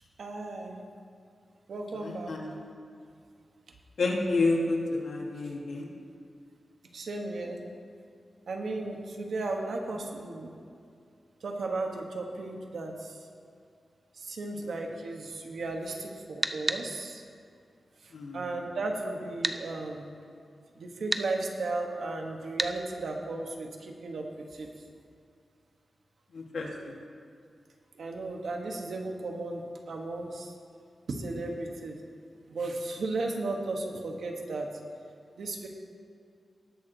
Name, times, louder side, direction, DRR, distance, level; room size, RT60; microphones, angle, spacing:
voice 1, 0.2-0.8 1.7-2.4 6.9-7.6 8.5-10.5 11.4-13.2 14.2-17.2 18.0-20.1 20.8-24.2 24.5-24.7 28.0-30.5 31.1-32.0 32.5-34.7 35.4-35.7, right 2 dB, 70° right, 2 dB, 1.2 m, -35 dB
voice 2, 1.9-2.6 4.0-5.9 18.1-18.4 26.3-26.7, left 3 dB, 75° left, -1 dB, 1.6 m, -29 dB
sound 1, 16.4-16.8 19.4-19.6 21.1-21.3 22.6-22.7, right 2 dB, 25° right, 0.4 m, -28 dB
18.5 x 6.5 x 3.9 m, 2.3 s
wide cardioid pair, 160°, 0 cm